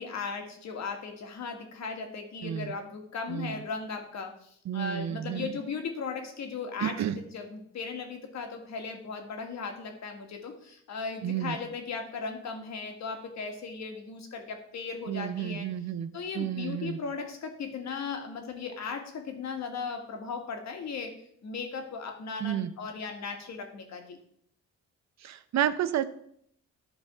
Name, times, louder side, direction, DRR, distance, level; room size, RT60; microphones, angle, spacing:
voice 1, 0.0-15.7 16.1-21.1 21.4-24.2, left 5 dB, 65° left, 4 dB, 1.9 m, -37 dB
voice 2, 2.4-2.7 3.3-3.6 4.7-5.5 6.8-7.2 11.2-11.6 15.1-17.0 22.4-22.7 25.2-26.0, right 10 dB, 60° right, 13 dB, 0.7 m, -31 dB
11.5 x 4.0 x 6.0 m, 0.68 s
cardioid pair, 90°, 30 cm